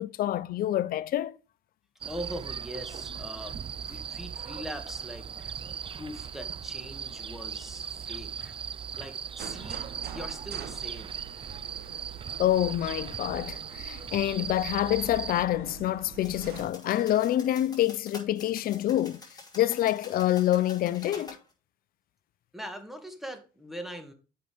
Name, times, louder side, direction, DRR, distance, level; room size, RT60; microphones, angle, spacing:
voice 1, 0.0-1.4 12.4-19.2 19.5-21.4, left 13 dB, 60° left, 0.6 m, -27 dB
voice 2, 2.0-8.5 9.0-11.2 22.5-24.1, equal, ahead, 2.1 m, -42 dB
sound 1, 2.0-15.4, right 7 dB, 30° right, 0.4 m, -38 dB
sound 2, 9.4-16.7, right 9 dB, 70° right, 1.2 m, -45 dB
sound 3, 16.2-21.4, left 3 dB, 25° left, 4.6 m, -48 dB
7.8 x 5.8 x 5.1 m
supercardioid pair, 75°, 17 cm